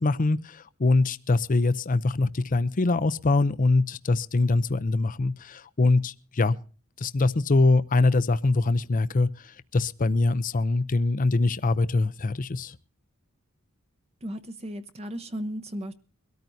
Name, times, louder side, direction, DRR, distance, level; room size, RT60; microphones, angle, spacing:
voice 1, 0.0-6.6 7.0-12.8, left 3 dB, 40° left, 0.6 m, -23 dB
voice 2, 14.2-15.9, equal, 30° right, 0.9 m, -35 dB
23.0 x 13.5 x 2.7 m
head